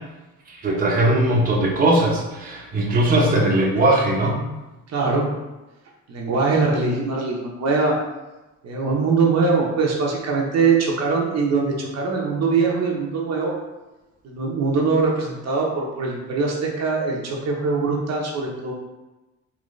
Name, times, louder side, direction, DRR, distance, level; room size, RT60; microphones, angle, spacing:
voice 1, 0.6-4.4, right 1 dB, 25° right, -4 dB, 0.9 m, -19 dB
voice 2, 4.9-5.3 6.1-8.0 8.6-13.5 14.2-18.7, right 4 dB, 50° right, -2 dB, 1.0 m, -22 dB
3.9 x 3.0 x 3.2 m, 1.1 s
cardioid pair, 100°, 33 cm